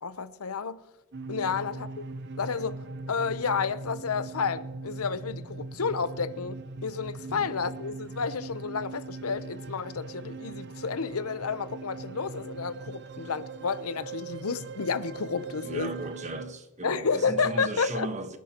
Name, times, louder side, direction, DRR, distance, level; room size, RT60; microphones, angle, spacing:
voice 1, 0.0-0.8 1.3-1.9 2.4-2.8 3.1-15.9 16.8-18.1, left 5 dB, 85° left, 0.8 m, -31 dB
sound 1, 1.1-16.4, right 3 dB, 55° right, 0.7 m, -41 dB
voice 2, 15.6-18.4, right 2 dB, 35° right, 1.3 m, -36 dB
24.5 x 11.0 x 3.0 m
head